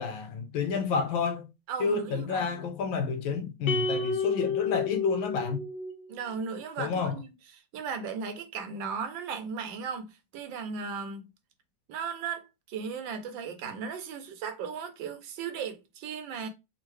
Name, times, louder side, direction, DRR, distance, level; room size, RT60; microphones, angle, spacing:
voice 1, 0.0-1.4 1.8-5.6 6.8-7.1, left 5 dB, 85° left, 1.6 m, -30 dB
voice 2, 1.7-2.7 6.1-7.3 7.7-11.2 11.9-16.5, right 6 dB, 75° right, 1.4 m, -36 dB
sound 1, 3.7-6.1, left 4 dB, 70° left, 1.1 m, -30 dB
3.6 x 2.6 x 3.1 m
omnidirectional pair, 2.1 m